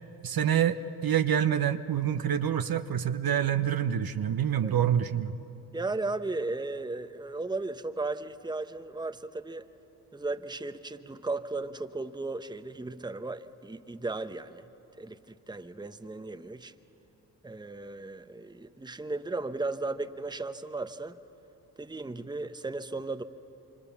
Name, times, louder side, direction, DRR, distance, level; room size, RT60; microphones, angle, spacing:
voice 1, 0.2-5.3, right 9 dB, 50° right, 9 dB, 1.0 m, -27 dB
voice 2, 5.7-9.7 10.1-14.7 15.0-16.7 17.4-21.2 21.8-23.2, right 3 dB, 10° right, 9 dB, 1.1 m, -35 dB
26.5 x 25.0 x 7.2 m, 2.8 s
hypercardioid pair, 45°, 46 cm